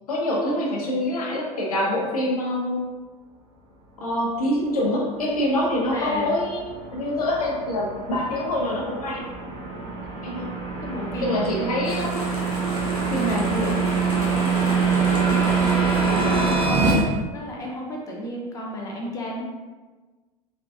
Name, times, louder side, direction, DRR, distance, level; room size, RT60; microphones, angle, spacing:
voice 1, 0.1-2.8 4.0-6.6 6.9-9.3 10.2-10.5 11.2-12.1 13.1-13.8 16.9-17.0, left 1 dB, 70° left, -2 dB, 0.6 m, -25 dB
sound 1, 5.4-16.9, right 5 dB, 30° right, 0.9 m, -25 dB
voice 2, 5.9-6.3 10.8-11.4 14.7-15.6 16.1-17.0 17.3-19.4, equal, 15° left, -2 dB, 0.5 m, -33 dB
sound 2, 11.8-17.0, equal, 85° right, 0.6 m, -35 dB
3.5 x 2.2 x 2.3 m, 1.3 s
figure-of-eight pair, 80°, 20 cm